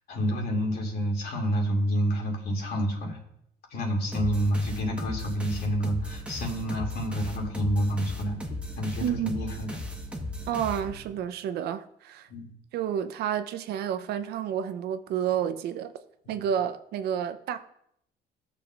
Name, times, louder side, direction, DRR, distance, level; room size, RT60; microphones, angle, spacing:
voice 1, 0.1-3.2 3.7-8.4 8.8-9.7 12.3-12.5 16.3-16.4, equal, 65° left, 2.4 m, -28 dB
sound 1, 4.1-11.3, left 1 dB, 5° right, 1.2 m, -37 dB
voice 2, 9.0-9.4 10.5-12.3 12.7-15.9 16.3-17.6, right 9 dB, 75° right, 0.7 m, -30 dB
17.0 x 7.0 x 2.4 m
cardioid pair, 110°, 17 cm